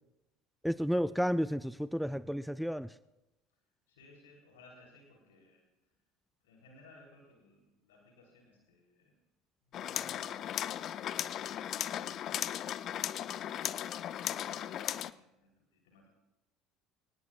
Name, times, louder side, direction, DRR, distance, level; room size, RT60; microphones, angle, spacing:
voice 1, 0.6-2.9, equal, ahead, 16 dB, 0.4 m, -32 dB
voice 2, 3.9-6.0 6.4-9.2 9.6-12.5 13.1-16.1, left 2 dB, 70° left, -1 dB, 3.5 m, -61 dB
sound 1, 9.7-15.1, left 11 dB, 45° left, 0.6 m, -37 dB
27.0 x 19.0 x 2.4 m, 1.0 s
figure-of-eight pair, 60°, 0 cm